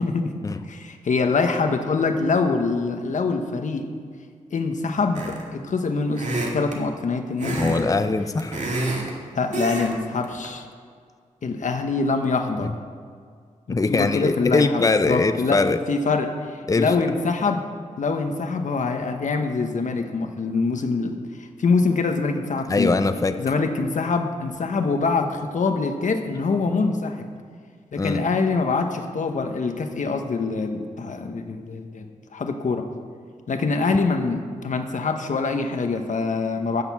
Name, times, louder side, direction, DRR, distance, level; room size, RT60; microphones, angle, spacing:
voice 1, 0.0-0.3 0.6-3.8 4.5-6.3 6.5-8.1 9.3-10.6 11.4-12.7 13.7-15.6 15.9-17.6 18.0-22.9 23.4-27.3 27.9-32.8 33.5-36.8, left 4 dB, 65° left, 5 dB, 1.2 m, -24 dB
sound 1, 5.1-5.6 6.1-6.8 7.4-7.8 8.1-9.1 9.5-9.9 10.2-10.5, right 2 dB, 60° right, 2.2 m, -28 dB
voice 2, 7.4-8.7 12.6-12.7 13.7-15.8 16.7-17.0 22.7-23.4 28.0-28.3, left 3 dB, 25° left, 9 dB, 0.6 m, -22 dB
15.0 x 6.9 x 6.0 m, 2.1 s
wide cardioid pair, 80°, 14 cm